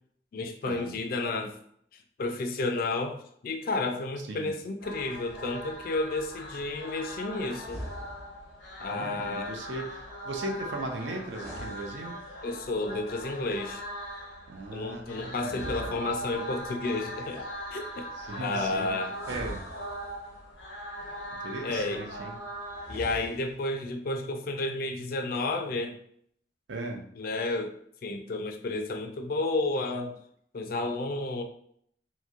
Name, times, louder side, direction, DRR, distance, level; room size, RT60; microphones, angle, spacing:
voice 1, 0.3-1.6 2.2-7.8 8.8-9.5 12.4-13.8 14.7-17.4 17.7-18.1 18.4-19.2 21.6-22.0 22.9-25.9 27.2-27.8 28.0-30.2 30.5-31.4, left 2 dB, 50° left, 5 dB, 0.4 m, -31 dB
voice 2, 4.2-4.5 8.9-12.2 14.5-16.0 18.1-19.0 19.3-19.6 21.4-22.3 26.7-27.1, right 2 dB, 80° right, 3 dB, 0.5 m, -38 dB
sound 1, 4.8-22.9, equal, 85° left, 0.7 m, -40 dB
sound 2, 7.6-8.5 11.2-12.6 15.4-16.6 19.1-20.4 22.7-23.7, equal, 35° right, 0.8 m, -43 dB
2.9 x 2.6 x 2.4 m, 0.67 s
head